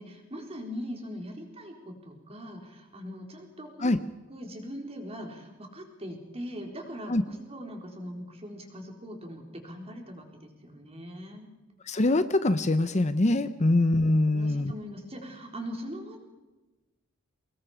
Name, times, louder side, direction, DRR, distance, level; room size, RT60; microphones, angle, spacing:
voice 1, 0.0-4.0 4.3-11.5 14.3-16.3, equal, 30° right, 2 dB, 4.2 m, -41 dB
voice 2, 11.9-14.7, left 2 dB, 35° left, 12 dB, 0.7 m, -24 dB
25.0 x 20.5 x 5.1 m, 1.1 s
head